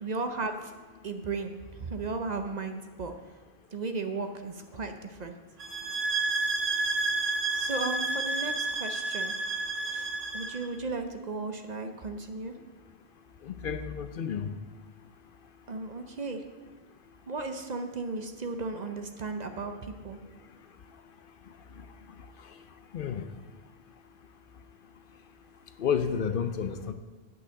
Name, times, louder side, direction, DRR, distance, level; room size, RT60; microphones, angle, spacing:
voice 1, 0.0-0.7 1.0-3.1 3.7-5.4 7.5-9.3 9.9-12.5 15.7-16.4 17.3-20.2, right 3 dB, 45° right, 6 dB, 0.7 m, -35 dB
sound 1, 5.6-10.6, right 3 dB, 80° right, 1.4 m, -30 dB
voice 2, 13.4-14.5 22.9-23.3 25.8-26.9, left 7 dB, 60° left, 9 dB, 0.7 m, -30 dB
9.1 x 5.8 x 7.4 m, 1.3 s
omnidirectional pair, 1.1 m